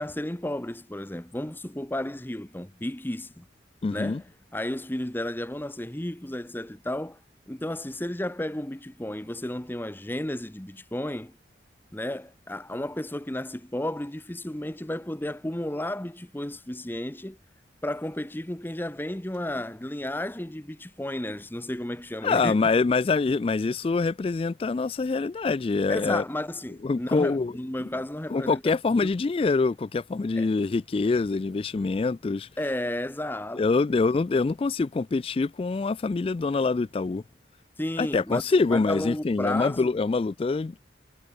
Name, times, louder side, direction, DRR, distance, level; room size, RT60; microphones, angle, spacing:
voice 1, 0.0-3.5 3.9-4.2 4.5-7.2 7.5-11.4 11.9-17.4 17.8-22.6 25.9-28.6 29.0-29.1 30.4-30.5 32.6-33.7 37.8-38.4 38.7-39.9, left 1 dB, 10° left, 0.9 m, -33 dB
voice 2, 3.8-4.2 22.2-26.2 26.8-27.6 28.3-32.5 33.5-37.2 38.0-40.8, left 4 dB, 30° left, 0.3 m, -25 dB
head